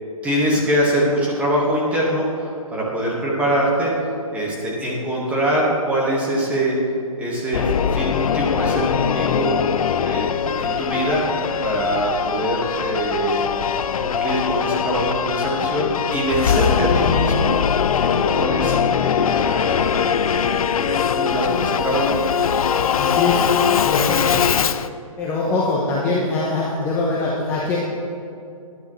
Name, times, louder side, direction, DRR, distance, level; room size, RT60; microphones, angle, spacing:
voice 1, 0.2-3.9 4.3-6.8 7.2-7.6 7.9-9.5 10.0-11.2 11.6-13.5 13.8-17.5 18.0-22.2, right 1 dB, 5° right, -4 dB, 1.5 m, -23 dB
Singing / Musical instrument, 7.5-24.9, left 7 dB, 70° left, 0.5 m, -21 dB
voice 2, 23.0-23.5 23.8-24.5 25.2-27.8, left 3 dB, 10° left, -5 dB, 0.9 m, -23 dB
14.0 x 10.5 x 3.2 m, 2.7 s
hypercardioid pair, 160°, 19 cm